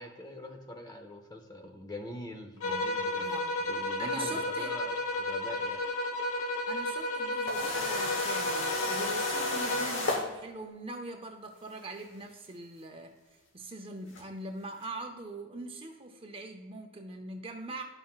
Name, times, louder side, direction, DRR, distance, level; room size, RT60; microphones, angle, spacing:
voice 1, 0.0-3.3 3.6-5.8, left 1 dB, 15° left, 4 dB, 0.7 m, -43 dB
voice 2, 2.5-2.9 3.2-3.5 4.0-4.8 6.7-17.8, right 2 dB, 25° right, 4 dB, 0.6 m, -42 dB
sound 1, 2.6-10.1, left 1 dB, 80° left, 0.9 m, -33 dB
sound 2, 7.5-10.3 12.1-12.2 14.1-14.2, left 2 dB, 55° left, 1.1 m, -33 dB
11.5 x 5.6 x 2.4 m, 1.2 s
head